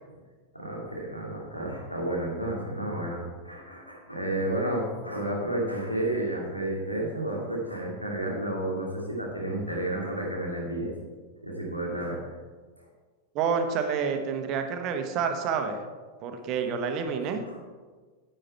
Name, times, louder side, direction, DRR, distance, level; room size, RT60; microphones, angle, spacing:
voice 1, 0.5-10.9 11.4-12.2 17.4-17.6, right 1 dB, 90° left, -2 dB, 2.4 m, -31 dB
voice 2, 13.3-15.8 16.2-17.6, right 6 dB, 40° right, 6 dB, 1.1 m, -28 dB
10.0 x 7.8 x 4.4 m, 1.4 s
figure-of-eight pair, 90°, 0 cm